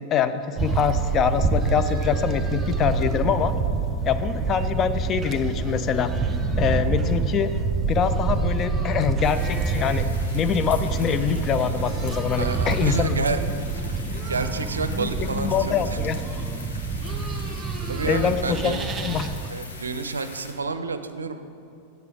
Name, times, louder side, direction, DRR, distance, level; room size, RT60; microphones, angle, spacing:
voice 1, 0.1-3.5 4.1-6.1 6.6-7.5 7.9-10.1 10.3-13.2 14.9-16.2 17.7-17.8 18.0-19.3, left 7 dB, 30° left, 11 dB, 0.4 m, -24 dB
sound 1, 0.6-19.5, right 4 dB, 20° right, 0.5 m, -27 dB
sound 2, 9.2-20.5, left 3 dB, 70° left, 1.1 m, -43 dB
voice 2, 12.4-13.5 14.3-16.0 17.3-17.4 17.9-18.9 19.5-21.4, right 4 dB, 75° right, 10 dB, 0.5 m, -29 dB
8.4 x 6.6 x 4.8 m, 2.9 s
figure-of-eight pair, 90°, 0 cm